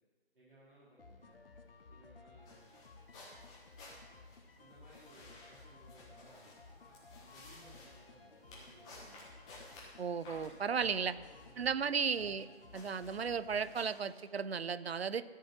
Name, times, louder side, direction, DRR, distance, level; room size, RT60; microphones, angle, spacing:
voice 1, 0.3-1.4 1.9-2.9 4.6-9.2 10.8-12.5, right 1 dB, 55° right, -8 dB, 4.0 m, -62 dB
sound 1, 1.0-14.0, left 3 dB, 60° left, 1.1 m, -57 dB
sound 2, 2.4-14.2, left 2 dB, 5° left, 0.7 m, -57 dB
voice 2, 10.0-11.1 11.6-12.5 12.7-15.2, right 6 dB, 70° right, 16 dB, 0.6 m, -35 dB
13.0 x 5.5 x 7.4 m, 1.5 s
figure-of-eight pair, 155°, 32 cm